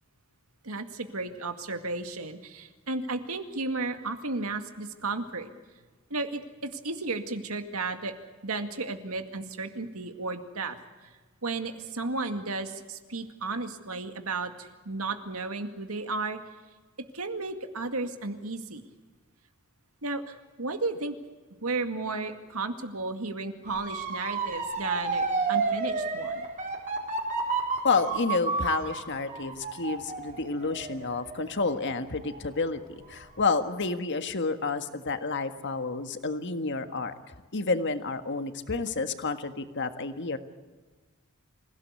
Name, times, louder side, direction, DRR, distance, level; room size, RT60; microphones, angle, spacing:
voice 1, 0.6-5.5 6.1-8.1 8.4-10.8 11.4-16.4 17.1-18.8 20.0-21.2 21.6-26.4, right 3 dB, 85° right, 7 dB, 2.1 m, -33 dB
Motor vehicle (road) / Siren, 23.7-32.6 33.0-33.4, right 4 dB, 40° right, 4.3 m, -31 dB
voice 2, 27.8-32.8 33.1-37.1 37.5-40.4, left 4 dB, 60° left, 8 dB, 1.7 m, -29 dB
26.0 x 17.0 x 8.3 m, 1.3 s
head